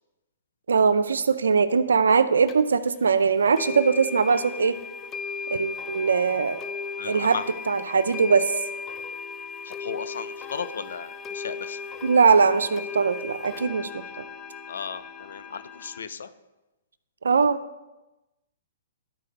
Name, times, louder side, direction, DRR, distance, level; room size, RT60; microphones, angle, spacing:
voice 1, 0.7-4.8 5.5-6.6 7.1-7.4 7.7-8.5 12.0-14.0 17.2-17.6, right 5 dB, 85° right, 12 dB, 0.5 m, -21 dB
sound 1, 2.5-2.6 3.6-16.0, left 5 dB, 20° left, 0.6 m, -36 dB
voice 2, 7.0-7.5 9.6-11.8 14.7-16.3, left 6 dB, 75° left, 13 dB, 0.5 m, -35 dB
12.0 x 4.6 x 3.3 m, 1.0 s
hypercardioid pair, 130°, 0 cm